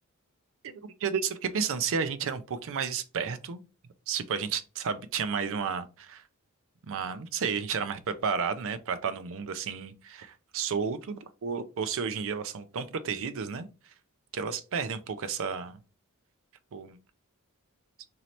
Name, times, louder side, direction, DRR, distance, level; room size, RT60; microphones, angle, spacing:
voice 1, 0.6-3.6 4.1-6.2 6.9-13.7 14.3-15.8 16.7-17.0, right 6 dB, 65° right, 0.5 m, -32 dB
3.1 x 2.7 x 4.1 m
head